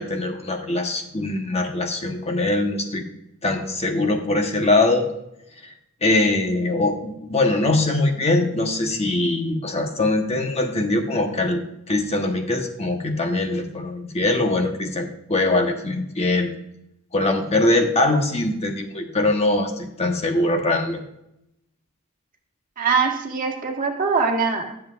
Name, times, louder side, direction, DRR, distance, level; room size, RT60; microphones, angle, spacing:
voice 1, 0.0-3.0 3.4-5.1 5.6-5.7 6.0-16.5 17.1-21.0, left 2 dB, 30° left, 4 dB, 1.1 m, -22 dB
voice 2, 22.8-24.7, right 5 dB, 40° right, 0 dB, 1.7 m, -22 dB
13.5 x 7.4 x 2.5 m, 0.83 s
head